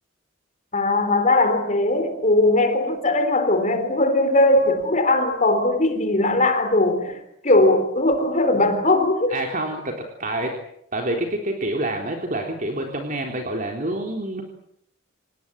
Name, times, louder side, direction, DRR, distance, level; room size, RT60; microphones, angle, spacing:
voice 1, 0.7-9.4, left 2 dB, 40° left, 3.9 m, -19 dB
voice 2, 9.3-9.9 10.2-10.5 10.9-14.4, right 1 dB, 45° right, 3.6 m, -27 dB
28.5 x 18.5 x 8.7 m
head